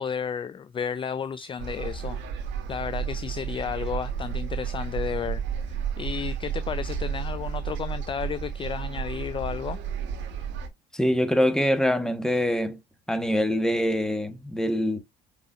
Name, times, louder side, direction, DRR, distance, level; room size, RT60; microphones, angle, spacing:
voice 1, 0.0-2.2 2.7-5.4 5.7-9.8, left 7 dB, 25° left, 0.4 m, -32 dB
sound 1, 1.6-10.7, right 7 dB, 65° right, 1.4 m, -32 dB
voice 2, 10.9-12.8 13.1-15.0, equal, 5° left, 1.2 m, -24 dB
5.4 x 4.0 x 2.5 m
supercardioid pair, 80°, 20 cm